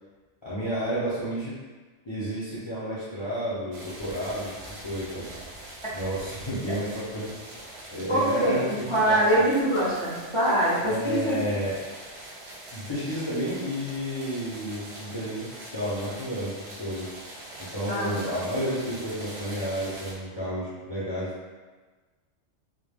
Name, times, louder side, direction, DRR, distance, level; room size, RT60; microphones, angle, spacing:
voice 1, 0.4-1.6 2.0-4.6 4.8-5.3 5.9-9.2 10.8-11.8 12.7-17.1 17.6-21.3, equal, 35° left, -11 dB, 0.4 m, -31 dB
sound 1, 3.7-20.1, right 1 dB, 70° right, 0.8 m, -43 dB
voice 2, 8.1-8.6 8.9-11.4 17.9-18.2, right 1 dB, 40° right, -10 dB, 0.5 m, -23 dB
2.2 x 2.1 x 3.3 m, 1.3 s
omnidirectional pair, 1.2 m